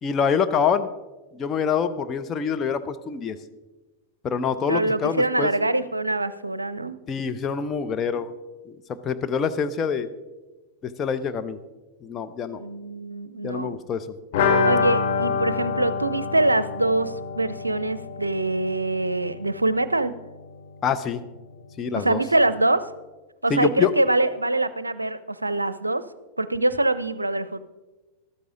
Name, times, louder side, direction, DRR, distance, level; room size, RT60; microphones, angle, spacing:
voice 1, 0.0-0.9 1.3-3.4 4.2-5.5 7.1-8.3 8.6-10.1 10.8-11.6 12.0-12.6 13.4-14.1 20.8-21.2 21.8-22.2 23.5-23.9, left 6 dB, 25° left, 8 dB, 0.8 m, -25 dB
voice 2, 4.7-6.9 12.5-13.8 14.6-20.1 22.0-22.8 23.4-26.0 26.4-27.7, right 2 dB, 80° right, 15 dB, 0.5 m, -24 dB
sound 1, 14.3-19.9 20.2-20.3 20.6-20.7, left 5 dB, 50° left, 2.6 m, -26 dB
13.5 x 13.0 x 3.8 m, 1.2 s
figure-of-eight pair, 90°, 0 cm